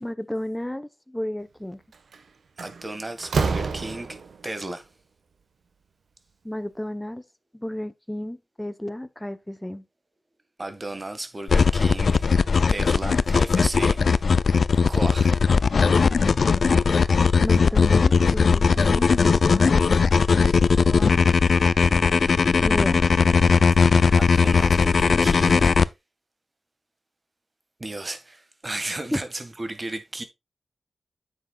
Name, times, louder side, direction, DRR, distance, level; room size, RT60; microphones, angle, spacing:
voice 1, 0.0-1.8 6.4-7.2 7.5-9.8 17.4-20.6 20.8-21.2 22.6-23.0 29.1-29.2, left 1 dB, 10° left, 0.9 m, -33 dB
Slam, 1.9-2.2 2.6-4.5, right 4 dB, 80° right, 1.3 m, -27 dB
voice 2, 2.6-4.9 10.6-12.2 12.7-14.3 14.9-15.3 24.1-25.7 27.8-30.2, right 2 dB, 30° right, 1.8 m, -34 dB
sound 1, 11.5-25.9, left 5 dB, 70° left, 0.4 m, -19 dB
9.6 x 8.0 x 2.4 m
cardioid pair, 70°, 0 cm